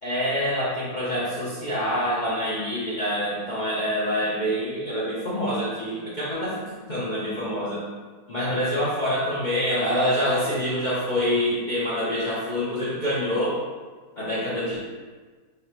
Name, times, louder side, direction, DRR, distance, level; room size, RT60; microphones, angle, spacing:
voice 1, 0.0-7.8 8.3-13.6 14.2-14.8, equal, 60° left, -9 dB, 0.5 m, -26 dB
2.9 x 2.7 x 4.2 m, 1.4 s
omnidirectional pair, 1.8 m